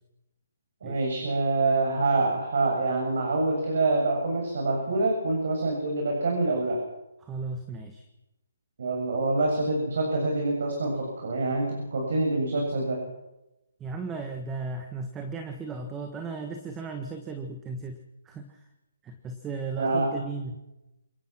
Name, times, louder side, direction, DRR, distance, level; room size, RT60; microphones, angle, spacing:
voice 1, 0.8-6.8 8.8-13.0 19.8-20.1, right 2 dB, 60° right, 0 dB, 7.9 m, -26 dB
voice 2, 7.2-8.0 13.8-18.0 18.2-18.6 19.0-20.6, right 4 dB, 10° right, 6 dB, 1.5 m, -36 dB
28.5 x 18.0 x 6.2 m, 0.97 s
hypercardioid pair, 160°, 0 cm